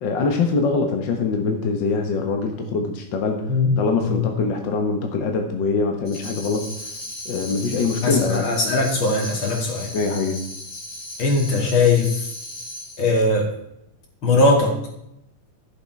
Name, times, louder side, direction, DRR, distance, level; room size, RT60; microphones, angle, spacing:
voice 1, 0.0-6.6 7.2-8.4 9.9-10.4, left 4 dB, 60° left, 4 dB, 1.2 m, -23 dB
Tambourine, 6.1-13.1, left 1 dB, 25° left, 2.5 m, -36 dB
voice 2, 8.0-9.9 11.2-12.1 13.0-13.5 14.2-14.7, left 3 dB, 40° left, 1 dB, 2.8 m, -19 dB
13.5 x 7.4 x 4.7 m, 0.82 s
omnidirectional pair, 3.8 m